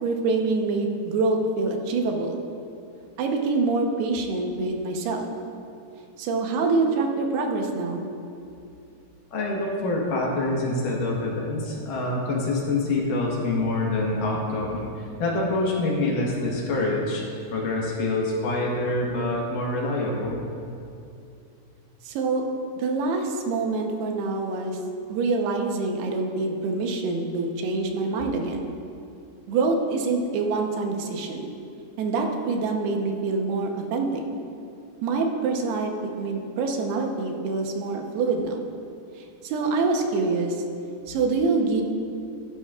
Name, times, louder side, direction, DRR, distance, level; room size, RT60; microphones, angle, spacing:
voice 1, 0.0-2.4 3.2-5.3 6.2-8.1 22.0-22.5 22.8-24.8 25.1-28.7 29.5-31.5 32.0-34.2 35.0-38.6 39.4-40.6 41.1-41.8, right 3 dB, 85° right, 2 dB, 3.0 m, -25 dB
voice 2, 9.3-14.8 15.2-20.4, left 2 dB, 65° left, -2 dB, 2.7 m, -26 dB
15.5 x 11.5 x 2.4 m, 2.6 s
omnidirectional pair, 4.5 m